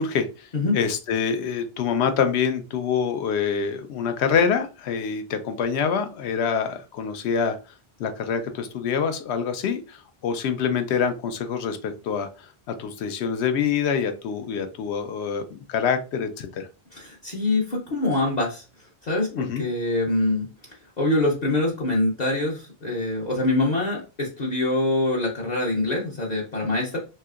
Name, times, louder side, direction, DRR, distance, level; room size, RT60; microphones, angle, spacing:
voice 1, 0.0-7.6 8.0-12.3 12.7-16.7 19.3-19.6, left 6 dB, 80° left, 8 dB, 0.8 m, -26 dB
voice 2, 16.9-18.6 19.0-20.5 21.0-27.0, left 2 dB, 45° left, -3 dB, 0.7 m, -24 dB
3.2 x 2.8 x 2.4 m, 0.31 s
omnidirectional pair, 1.1 m